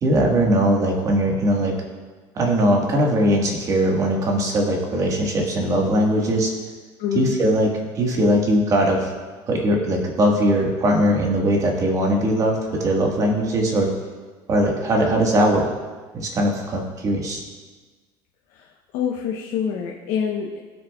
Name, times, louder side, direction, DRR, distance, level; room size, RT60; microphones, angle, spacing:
voice 1, 0.0-1.7 2.3-6.5 7.1-7.7 7.9-9.1 9.5-13.9 14.5-15.7 16.1-17.4, right 1 dB, 30° right, 0 dB, 1.5 m, -20 dB
voice 2, 7.0-7.3 18.5-18.7 18.9-20.6, left 7 dB, 70° left, -1 dB, 1.0 m, -26 dB
19.0 x 6.5 x 2.3 m, 1.4 s
cardioid pair, 155°, 11 cm